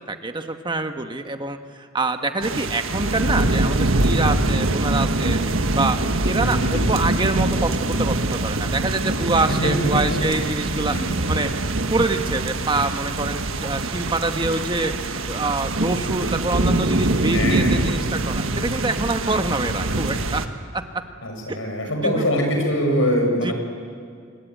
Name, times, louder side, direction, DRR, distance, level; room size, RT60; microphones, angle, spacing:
voice 1, 0.1-5.4 5.7-6.0 6.2-11.0 11.3-11.5 11.9-14.9 15.3-20.4 20.7-21.0 21.5-21.6 22.0-22.3 23.4-23.5, right 2 dB, 25° right, 6 dB, 1.3 m, -25 dB
sound 1, 2.4-20.5, right 2 dB, 90° right, 1.5 m, -23 dB
voice 2, 6.4-6.9 9.5-10.3 10.9-11.1 17.3-17.8 21.2-23.5, equal, 75° left, 3 dB, 6.2 m, -23 dB
27.0 x 23.0 x 9.3 m, 2.2 s
head